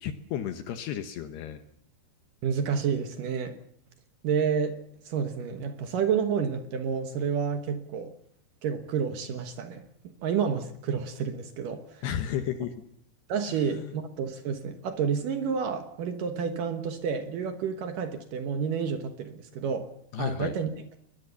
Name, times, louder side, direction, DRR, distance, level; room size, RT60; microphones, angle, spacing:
voice 1, 0.0-1.6 12.0-12.7 13.5-13.9 20.1-20.5, left 10 dB, 70° left, 8 dB, 2.7 m, -33 dB
voice 2, 2.4-3.6 4.2-4.8 5.1-8.1 8.6-9.9 10.2-12.0 13.3-19.9 20.2-20.7, right 6 dB, 75° right, 7 dB, 1.9 m, -29 dB
22.5 x 21.0 x 7.0 m, 0.71 s
omnidirectional pair, 5.8 m